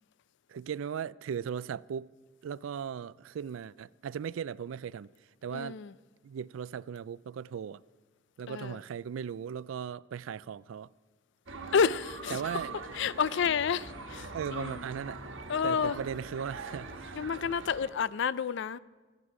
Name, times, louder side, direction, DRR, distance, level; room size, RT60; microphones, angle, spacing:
voice 1, 0.5-2.1 2.4-5.1 5.4-5.8 6.2-7.8 8.4-10.9 12.3-12.8 14.3-15.2 15.6-17.2, right 7 dB, 85° right, 0.3 m, -37 dB
voice 2, 5.5-5.9 8.5-8.8 11.7-12.6 12.9-14.8 15.5-16.0 17.2-18.8, left 6 dB, 65° left, 0.4 m, -30 dB
sound 1, 11.5-17.9, right 3 dB, 70° right, 1.4 m, -43 dB
25.0 x 9.7 x 4.9 m
head